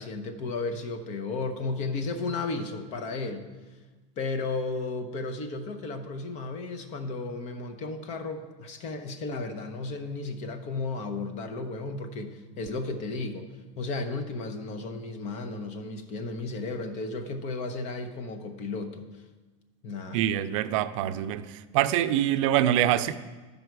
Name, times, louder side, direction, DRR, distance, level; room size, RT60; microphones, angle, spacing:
voice 1, 0.0-3.5 4.2-13.5 13.8-19.2 19.8-20.4, left 3 dB, 40° left, 7 dB, 1.0 m, -34 dB
voice 2, 20.1-21.5 21.7-23.2, right 12 dB, 70° right, 12 dB, 0.5 m, -24 dB
13.0 x 5.4 x 4.7 m, 1.3 s
supercardioid pair, 145°, 17 cm